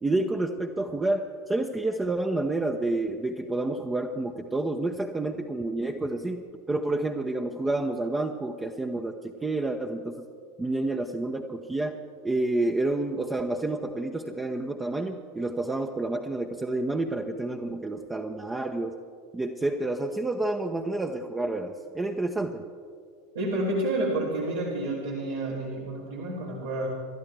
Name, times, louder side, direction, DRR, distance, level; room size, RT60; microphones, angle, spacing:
voice 1, 0.0-10.2 10.6-19.0 19.3-22.6, right 2 dB, 15° right, 3 dB, 0.8 m, -29 dB
voice 2, 23.3-26.9, right 1 dB, 75° right, -7 dB, 3.2 m, -29 dB
28.0 x 12.5 x 3.4 m, 2.2 s
figure-of-eight pair, 80°, 0 cm